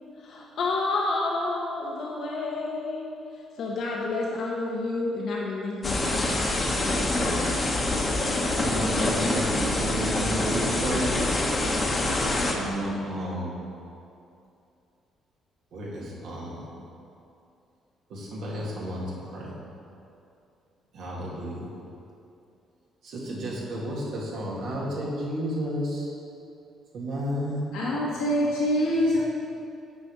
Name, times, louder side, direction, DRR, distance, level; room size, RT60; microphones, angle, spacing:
voice 1, 0.2-3.1 3.6-7.5, left 3 dB, 65° left, -3 dB, 1.0 m, -30 dB
sound 1, 5.8-12.5, left 2 dB, 30° left, 1.1 m, -25 dB
voice 2, 8.5-11.2 12.5-13.5 15.7-16.6 18.1-19.6 20.9-21.7 23.0-26.1 26.9-28.0, equal, 70° right, -5 dB, 2.1 m, -32 dB
voice 3, 27.7-29.2, equal, 85° left, -7 dB, 1.7 m, -24 dB
8.2 x 4.9 x 5.5 m, 2.6 s
cardioid pair, 85°, 0 cm